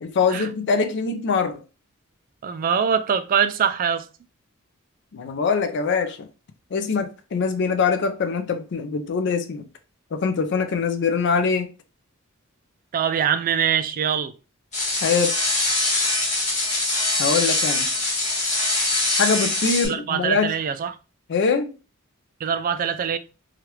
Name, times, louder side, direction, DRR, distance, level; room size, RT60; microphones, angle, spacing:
voice 1, 0.0-1.6 5.1-6.3 6.7-9.7 10.1-11.7 15.0-15.3 17.2-17.9 19.2-20.5 21.3-21.7, left 5 dB, 55° left, 0.4 m, -23 dB
voice 2, 2.4-4.1 12.9-14.3 19.8-20.9 22.4-23.2, right 7 dB, 40° right, 0.3 m, -23 dB
sound 1, 14.7-19.9, left 2 dB, 35° left, 1.2 m, -23 dB
3.1 x 2.4 x 2.9 m
head